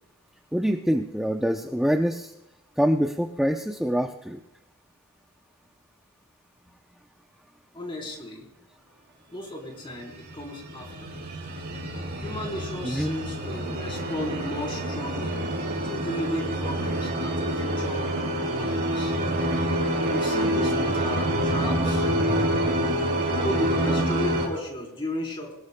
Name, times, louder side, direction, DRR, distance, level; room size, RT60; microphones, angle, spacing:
voice 1, 0.5-2.3 2.8-4.4 12.8-13.2, equal, ahead, 3 dB, 0.6 m, -25 dB
voice 2, 7.7-8.5 9.3-11.1 12.2-15.5 15.8-18.1 18.5-19.1 20.1-22.1 23.3-25.5, left 1 dB, 25° left, 0 dB, 3.9 m, -34 dB
sound 1, 10.1-24.5, right 1 dB, 45° right, 4.3 m, -27 dB
22.5 x 19.5 x 2.2 m, 0.94 s
head